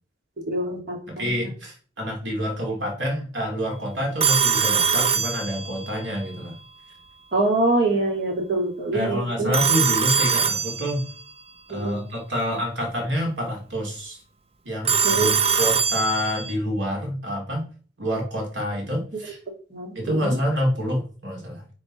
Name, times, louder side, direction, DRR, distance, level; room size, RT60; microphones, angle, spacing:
voice 1, 0.5-1.5 7.3-9.5 11.7-12.0 15.0-15.3 19.7-20.4, right 2 dB, 55° right, 1 dB, 2.3 m, -25 dB
voice 2, 1.1-6.6 8.9-11.0 11.7-14.2 14.6-17.7 18.0-19.4 19.9-21.6, equal, 90° right, 1 dB, 3.0 m, -27 dB
Telephone, 4.2-6.0 9.5-11.2 14.8-16.5, right 6 dB, 35° right, 0.6 m, -22 dB
9.6 x 4.3 x 4.3 m, 0.41 s
head